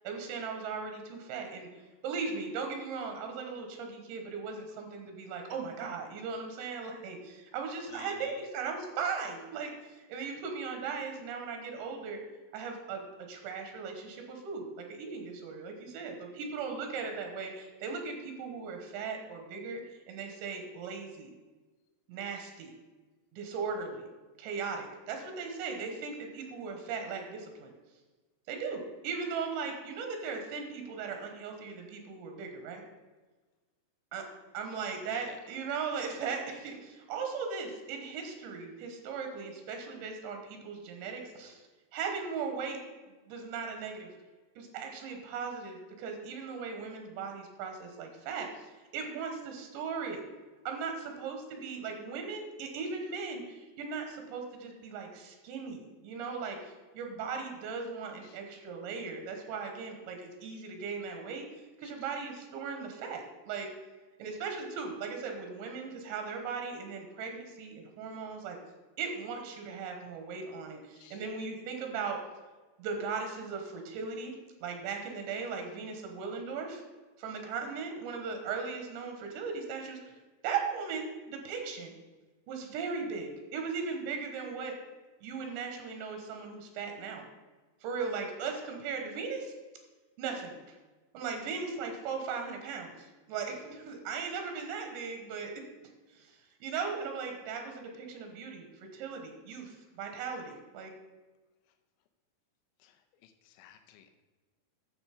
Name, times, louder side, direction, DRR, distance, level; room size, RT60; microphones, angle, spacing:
voice 1, 0.1-1.7 2.0-12.2 12.5-19.8 20.1-21.3 22.1-22.7 23.3-24.1 24.4-27.7 28.5-32.8 34.1-34.2 34.5-41.6 41.9-42.8 43.3-44.1 44.6-50.2 50.7-61.5 61.8-63.7 64.2-68.6 69.0-72.2 72.8-74.3 74.6-76.8 77.2-80.0 80.4-81.9 82.5-84.8 85.2-87.3 87.8-89.5 90.2-90.5 91.1-95.5 96.2-98.7 98.9-100.9, right 5 dB, 85° right, 4 dB, 3.4 m, -38 dB
voice 2, 7.9-8.5 34.7-34.8 35.1-35.4 58.2-58.4 61.8-62.1 71.0-71.2 99.6-99.7 102.8-104.1, left 10 dB, 90° left, 7 dB, 3.0 m, -54 dB
9.9 x 7.3 x 5.1 m, 1.3 s
omnidirectional pair, 5.0 m